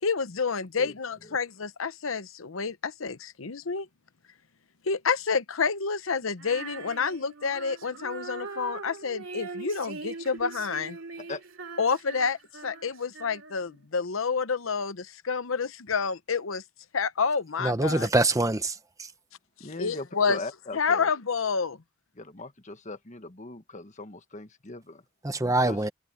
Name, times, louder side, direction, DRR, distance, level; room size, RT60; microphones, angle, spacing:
voice 1, 0.0-3.9 4.8-11.0 11.8-16.6 16.9-18.1 19.8-20.4 20.7-21.8, left 5 dB, 75° left, 0.9 m, -29 dB
Female singing, 6.4-13.8, right 4 dB, 70° right, 3.1 m, -41 dB
voice 2, 17.6-19.1 25.2-25.9, right 2 dB, 15° right, 0.9 m, -25 dB
voice 3, 19.6-21.1 22.1-25.0 25.4-25.8, left 2 dB, 35° left, 1.6 m, -40 dB
head